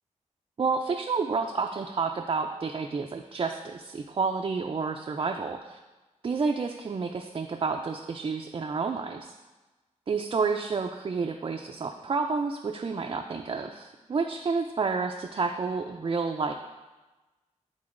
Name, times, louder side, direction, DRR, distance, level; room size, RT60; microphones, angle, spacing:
voice 1, 0.6-5.8 6.2-9.3 10.1-16.5, right 4 dB, 40° right, 3 dB, 0.4 m, -30 dB
10.5 x 3.8 x 2.5 m, 1.2 s
cardioid pair, 70°, 13 cm